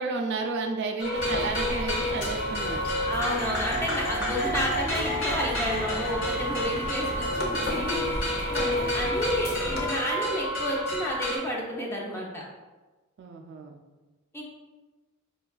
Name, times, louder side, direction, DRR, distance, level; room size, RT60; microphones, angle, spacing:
voice 1, 0.0-2.9 13.2-13.8, right 3 dB, 55° right, 3 dB, 0.3 m, -32 dB
sound 1, 1.0-11.4, equal, 80° left, 1.4 m, -30 dB
sound 2, 1.2-9.9, left 1 dB, 55° left, 0.7 m, -35 dB
voice 2, 3.1-12.4 14.3-14.4, equal, 15° left, -3 dB, 0.6 m, -31 dB
4.4 x 2.3 x 2.3 m, 1.2 s
head